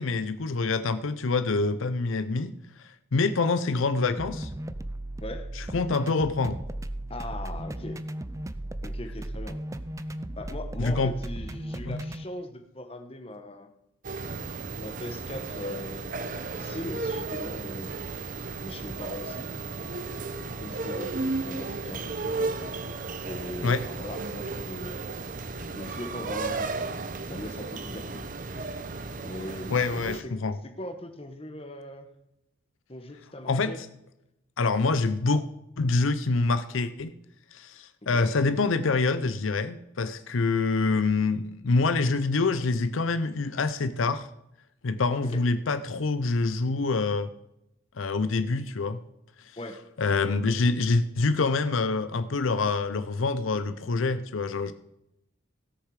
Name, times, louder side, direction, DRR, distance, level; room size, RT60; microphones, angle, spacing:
voice 1, 0.0-2.5 2.8-4.5 5.6-6.6 10.8-11.1 11.8-12.0 23.6-23.8 29.7-30.6 33.5-33.9 34.6-35.4 35.8-37.1 37.5-44.3 44.8-47.3 48.0-49.0 50.0-54.7, left 3 dB, 80° left, 12 dB, 0.6 m, -26 dB
sound 1, 4.2-12.2, right 1 dB, 15° right, 0.4 m, -36 dB
voice 2, 5.2-5.5 7.1-8.0 8.8-9.6 10.4-13.7 14.4-16.2 16.5-17.9 18.6-19.5 20.6-22.5 23.2-25.0 25.7-26.9 27.2-28.3 28.6-28.7 29.2-30.3 30.6-32.1 32.9-33.8 38.1-38.3 45.2-45.4 49.6-49.8 50.2-50.3, left 1 dB, 30° left, 7 dB, 1.1 m, -40 dB
sound 2, 14.0-30.2, right 3 dB, 40° right, 0.7 m, -34 dB
17.0 x 6.6 x 4.8 m, 0.84 s
head